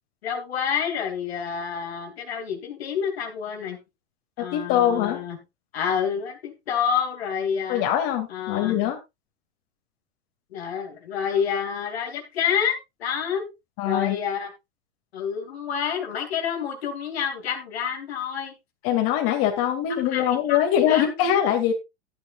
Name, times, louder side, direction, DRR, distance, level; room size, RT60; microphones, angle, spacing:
voice 1, 0.2-3.8 4.4-5.4 5.7-7.8 8.3-8.8 10.5-13.5 13.8-14.5 15.1-18.5 19.9-21.1, left 7 dB, 65° left, 4 dB, 2.8 m, -28 dB
voice 2, 4.4-5.2 7.7-9.0 13.8-14.2 18.8-21.7, left 10 dB, 45° left, 3 dB, 2.7 m, -23 dB
14.0 x 9.2 x 2.5 m, 0.23 s
figure-of-eight pair, 95°, 33 cm